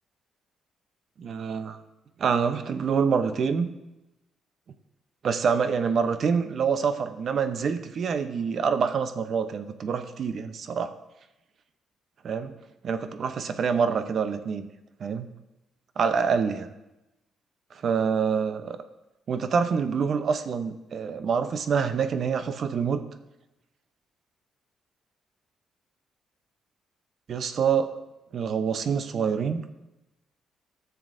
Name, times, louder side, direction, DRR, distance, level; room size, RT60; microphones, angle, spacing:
voice 1, 1.2-1.8 2.2-3.7 5.2-10.9 12.2-12.6 12.8-14.7 15.0-15.3 16.0-16.7 17.8-18.8 19.3-23.0 27.3-28.0 28.3-29.6, right 6 dB, 55° right, 9 dB, 0.7 m, -26 dB
14.0 x 6.9 x 2.6 m, 0.96 s
cardioid pair, 90°, 0 cm